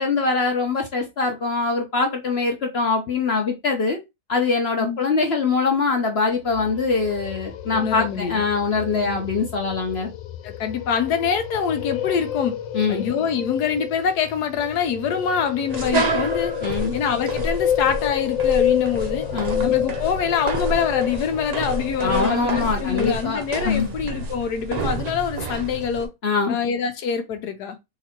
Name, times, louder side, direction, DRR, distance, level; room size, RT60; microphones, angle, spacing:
voice 1, 0.0-4.0 4.3-10.1 12.7-13.0 16.6-17.0 19.3-19.7 22.0-23.9 26.2-26.6, left 4 dB, 50° left, 0.8 m, -23 dB
sound 1, 6.4-23.4, left 10 dB, 90° left, 1.3 m, -29 dB
voice 2, 7.7-8.4 8.9-9.2 10.4-12.6 12.9-16.5 16.9-19.2 19.6-26.1 26.5-27.8, left 7 dB, 70° left, 1.2 m, -25 dB
sound 2, 15.7-26.0, right 3 dB, 70° right, 0.3 m, -30 dB
3.9 x 2.9 x 4.3 m
omnidirectional pair, 1.9 m